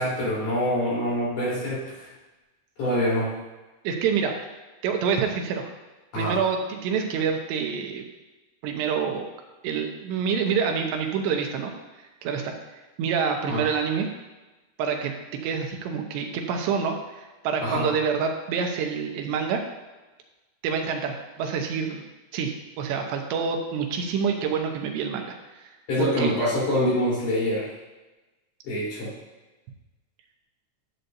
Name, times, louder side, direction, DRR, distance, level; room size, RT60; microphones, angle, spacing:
voice 1, 0.0-2.1 2.8-3.3 6.1-6.4 13.5-13.7 17.6-17.9 25.9-27.7 28.6-29.1, equal, 50° left, -7 dB, 4.9 m, -25 dB
voice 2, 3.8-4.4 4.8-5.7 6.1-8.1 8.6-9.3 9.6-11.7 12.2-12.5 13.0-14.1 14.8-15.1 15.4-19.6 20.6-22.1 22.3-25.7 26.0-26.4, right 6 dB, 85° right, 3 dB, 3.1 m, -27 dB
12.5 x 7.9 x 2.7 m, 1.1 s
omnidirectional pair, 4.8 m